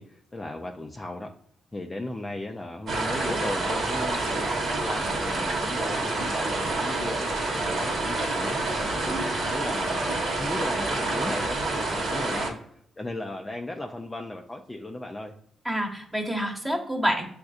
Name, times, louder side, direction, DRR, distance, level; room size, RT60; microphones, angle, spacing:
voice 1, 0.0-1.3 1.7-8.6 9.0-15.3, left 1 dB, 20° left, 2 dB, 0.4 m, -36 dB
sound 1, 2.9-12.5, right 2 dB, 65° right, 1.3 m, -28 dB
voice 2, 15.6-17.2, equal, 10° right, 1 dB, 1.1 m, -28 dB
7.5 x 2.6 x 2.4 m, 0.68 s
cardioid pair, 90°, 0 cm